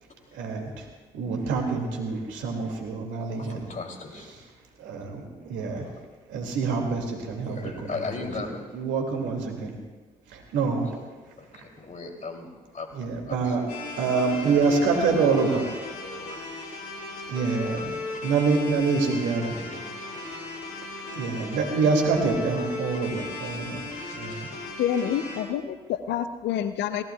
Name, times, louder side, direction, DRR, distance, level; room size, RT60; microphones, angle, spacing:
voice 1, 0.3-0.9 1.1-3.7 4.8-5.9 6.3-8.3 8.7-9.8 10.3-10.9 12.9-13.6 14.0-15.6 17.3-17.9 18.2-19.5 20.8-24.5, right 4 dB, 70° right, 2 dB, 2.3 m, -26 dB
voice 2, 3.4-4.4 5.8-5.9 7.4-8.7 10.9-12.9 13.3-13.6 15.2-16.4 19.4-20.4 22.9-23.6 24.0-24.2, left 3 dB, 40° left, 3 dB, 2.9 m, -38 dB
sound 1, 13.7-25.4, left 2 dB, 85° left, 2.4 m, -37 dB
voice 3, 24.8-27.0, left 9 dB, 65° left, 11 dB, 0.7 m, -27 dB
24.0 x 18.0 x 2.3 m, 1.3 s
hypercardioid pair, 45°, 20 cm